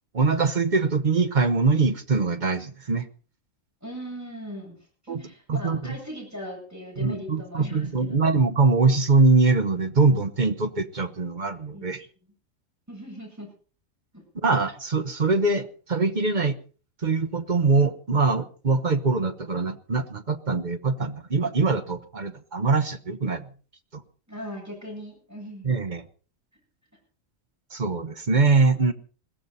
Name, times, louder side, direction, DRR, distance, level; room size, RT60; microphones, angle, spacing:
voice 1, 0.1-3.1 5.1-5.2 5.5-6.0 7.0-12.1 14.4-16.6 17.0-23.5 23.9-24.0 25.6-26.0 27.7-28.9, right 4 dB, 40° right, 11 dB, 1.1 m, -23 dB
voice 2, 3.8-4.7 5.0-8.2 11.7-11.9 12.9-13.5 14.1-14.2 24.3-25.7, equal, 10° right, 0 dB, 8.0 m, -39 dB
21.0 x 15.0 x 4.1 m, 0.39 s
omnidirectional pair, 1.3 m